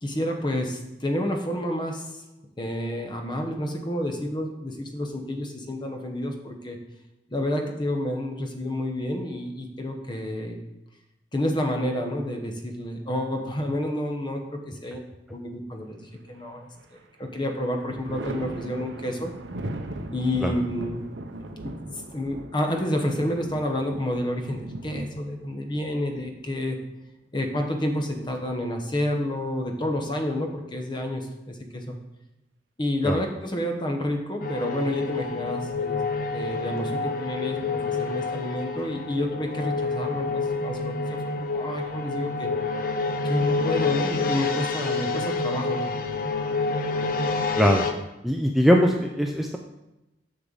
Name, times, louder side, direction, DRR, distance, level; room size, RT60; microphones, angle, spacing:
voice 1, 0.0-2.2 2.6-6.8 7.3-10.6 11.3-15.0 15.3-16.7 17.2-19.3 20.1-21.0 21.6-26.8 27.3-32.0 32.8-36.0 36.3-42.5 43.2-45.8, left 1 dB, 25° left, 4 dB, 0.9 m, -29 dB
Thunder, 16.3-17.1 17.4-27.0 28.5-29.3, right 1 dB, 85° right, 0.7 m, -39 dB
sound 1, 34.4-47.9, left 4 dB, 50° left, 0.7 m, -28 dB
voice 2, 48.2-49.6, equal, ahead, 1 dB, 0.4 m, -21 dB
7.4 x 6.5 x 3.9 m, 0.95 s
head